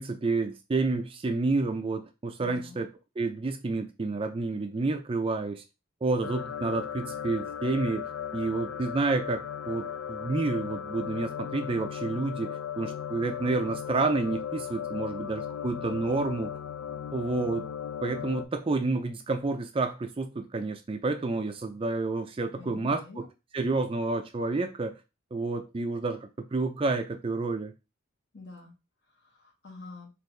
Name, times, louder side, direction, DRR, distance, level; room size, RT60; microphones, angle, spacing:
voice 1, 0.0-2.9 3.2-5.6 6.0-16.5 17.1-17.7 18.0-23.2 23.5-25.0 25.3-27.7, right 3 dB, 25° right, 0.4 m, -29 dB
voice 2, 2.4-2.8 22.6-23.3 28.3-28.7 29.2-30.1, left 3 dB, 55° left, 1.5 m, -46 dB
sound 1, 6.2-18.5, left 8 dB, 90° left, 0.4 m, -37 dB
4.3 x 2.5 x 3.1 m
head